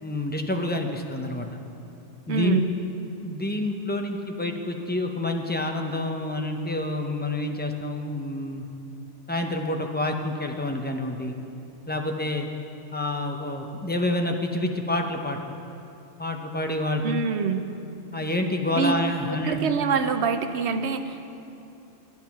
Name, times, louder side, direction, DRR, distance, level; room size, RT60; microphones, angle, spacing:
voice 1, 0.0-1.5 2.3-2.6 3.2-8.6 9.3-11.4 11.9-12.5 12.9-15.4 16.2-17.0 18.1-19.7, left 1 dB, 15° left, 3 dB, 0.4 m, -28 dB
voice 2, 2.3-2.7 17.0-17.6 18.7-18.9 19.3-21.3, right 6 dB, 65° right, 9 dB, 0.9 m, -25 dB
10.5 x 9.1 x 5.8 m, 2.8 s
omnidirectional pair, 1.2 m